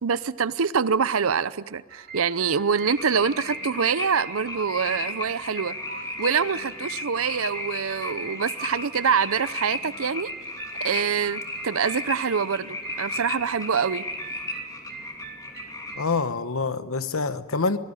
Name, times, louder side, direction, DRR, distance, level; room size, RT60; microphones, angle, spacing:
voice 1, 0.0-5.8 6.2-10.3 10.8-14.0, right 6 dB, 80° right, 17 dB, 0.7 m, -25 dB
sound 1, 1.9-16.0, right 5 dB, 50° right, 2.8 m, -43 dB
sound 2, 2.9-16.0, left 2 dB, 15° left, 2.9 m, -35 dB
voice 2, 15.9-17.8, left 4 dB, 80° left, 12 dB, 1.1 m, -26 dB
24.0 x 18.0 x 9.8 m, 1.5 s
head